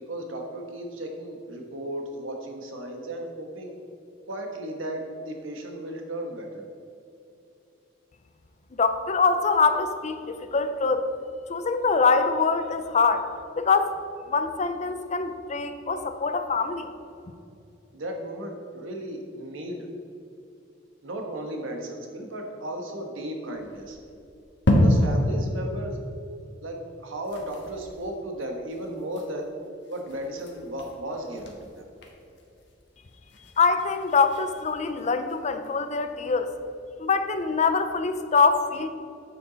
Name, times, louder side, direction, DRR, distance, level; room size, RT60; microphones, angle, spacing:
voice 1, 0.1-3.7 4.3-6.6 17.9-19.9 21.0-24.0 24.7-26.0 26.6-29.5 29.9-31.9, right 1 dB, 85° right, 3 dB, 1.3 m, -35 dB
voice 2, 8.8-11.1 11.5-13.3 13.6-14.0 14.3-16.9 33.6-36.5 37.0-38.9, left 4 dB, 35° left, 9 dB, 0.5 m, -24 dB
sound 1, 23.5-25.4 25.8-25.9 26.2-26.3 26.6-26.8 27.1-35.8, left 1 dB, 65° left, 1.3 m, -30 dB
9.0 x 6.9 x 4.0 m, 2.7 s
head